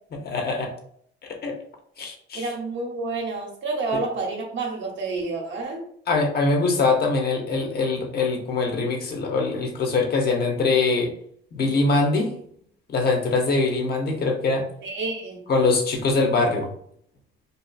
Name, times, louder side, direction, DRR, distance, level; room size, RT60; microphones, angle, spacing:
voice 1, 0.2-0.7 1.3-1.6 2.0-2.5 6.1-11.1 11.5-12.3 12.9-14.7 15.5-16.7, left 3 dB, 50° left, 2 dB, 0.7 m, -23 dB
voice 2, 2.3-5.8 14.8-15.4, right 3 dB, 70° right, 0 dB, 0.8 m, -29 dB
2.7 x 2.4 x 2.3 m, 0.65 s
cardioid pair, 90°, 20 cm